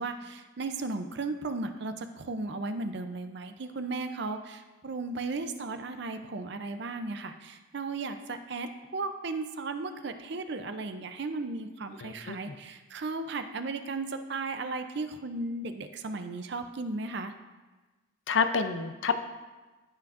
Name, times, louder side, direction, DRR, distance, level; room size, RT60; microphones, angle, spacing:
voice 1, 0.0-17.3, right 3 dB, 55° right, 8 dB, 0.5 m, -35 dB
voice 2, 12.0-12.4 18.3-19.2, left 5 dB, 65° left, 8 dB, 0.5 m, -28 dB
14.5 x 5.9 x 2.5 m, 1.2 s
head